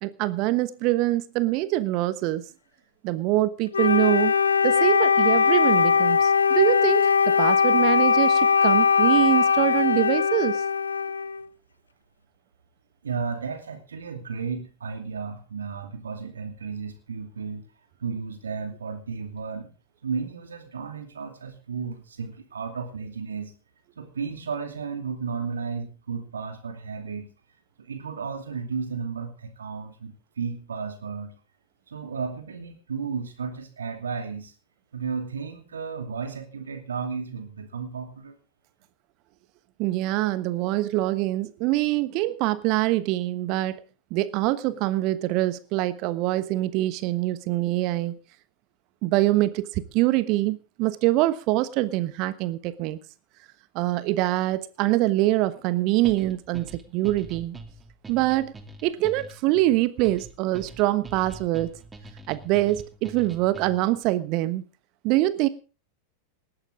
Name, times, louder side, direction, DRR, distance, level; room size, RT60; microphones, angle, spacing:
voice 1, 0.0-2.5 3.0-4.3 4.6-10.6 39.8-43.8 44.1-48.2 49.0-53.0 53.7-57.6 58.1-58.5 58.8-61.8 62.3-64.6 65.0-65.5, right 17 dB, 40° right, 15 dB, 1.2 m, -24 dB
Wind instrument woodwind instrument, 3.7-11.5, left 6 dB, 75° left, 0.7 m, -20 dB
voice 2, 13.0-17.7 18.0-19.7 20.0-23.5 24.0-27.3 27.8-31.3 31.9-34.5 34.9-38.4, right 5 dB, 70° right, 7 dB, 2.6 m, -33 dB
sound 1, 56.0-64.0, right 2 dB, 15° right, 2.5 m, -44 dB
19.0 x 14.0 x 3.6 m, 0.35 s
figure-of-eight pair, 90°, 0 cm